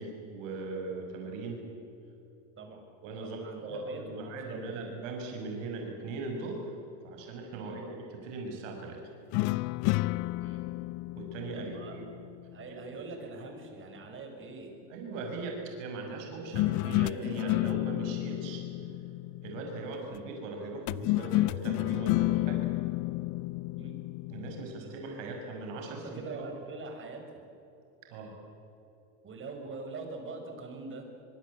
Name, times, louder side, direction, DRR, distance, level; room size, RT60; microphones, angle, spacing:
voice 1, 0.0-1.6 3.0-6.7 7.0-9.0 11.2-12.0 12.7-13.1 14.9-18.6 19.4-22.7 24.3-26.4 28.1-28.3, right 3 dB, 75° right, 2 dB, 6.2 m, -39 dB
voice 2, 3.2-4.9 7.6-7.8 10.4-10.7 11.5-12.0 12.5-14.7 23.8-24.0 24.5-25.4 25.8-27.2 29.2-31.2, right 3 dB, 30° right, 4 dB, 6.2 m, -44 dB
sound 1, 9.3-12.7 16.5-19.9 20.9-24.7, left 20 dB, 50° left, 0.5 m, -31 dB
24.0 x 23.0 x 8.6 m, 2.7 s
supercardioid pair, 120°, 38 cm